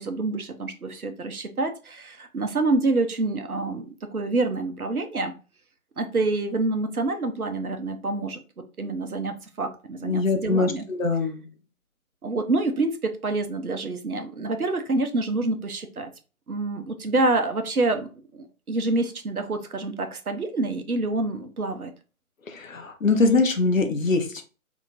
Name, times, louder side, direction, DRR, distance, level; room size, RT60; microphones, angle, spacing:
voice 1, 0.0-5.3 6.0-8.4 8.8-10.8 12.2-16.1 16.5-18.1 18.3-21.9, right 2 dB, 85° right, 0.8 m, -27 dB
voice 2, 10.0-11.4 22.5-24.4, left 3 dB, 65° left, 0.8 m, -23 dB
2.9 x 2.5 x 3.9 m
figure-of-eight pair, 135°, 43 cm